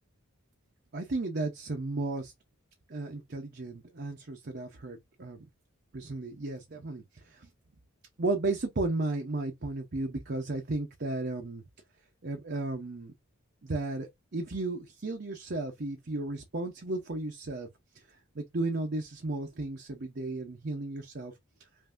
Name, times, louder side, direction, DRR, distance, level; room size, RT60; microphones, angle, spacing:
voice 1, 0.9-2.3 2.9-5.5 5.9-7.5 8.2-11.6 12.2-13.1 13.6-17.7 17.9-18.0 18.3-21.3, right 2 dB, 45° right, 0.7 m, -34 dB
5.5 x 2.6 x 2.5 m
head